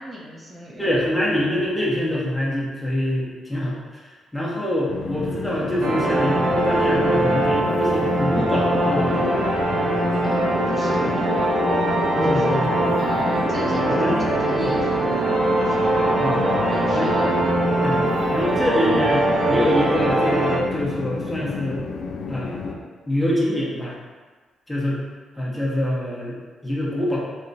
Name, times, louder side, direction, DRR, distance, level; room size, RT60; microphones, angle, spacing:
voice 1, 0.0-1.0 10.2-11.6 12.2-12.6 13.0-14.2 14.4-16.3 16.7-17.2, equal, 40° right, -6 dB, 1.0 m, -35 dB
voice 2, 0.8-4.1 4.3-9.3 12.1-12.7 13.8-14.2 14.6-14.8 16.2-16.4 16.9-17.3 17.8-21.8 22.3-24.0 24.7-25.0 25.4-27.3, left 1 dB, 15° left, -6 dB, 1.0 m, -25 dB
Train, 4.9-22.7, left 4 dB, 60° left, 0.3 m, -31 dB
sound 1, 5.8-20.6, right 1 dB, 65° right, 0.7 m, -21 dB
3.3 x 2.8 x 2.7 m, 1.4 s
supercardioid pair, 50°, 0 cm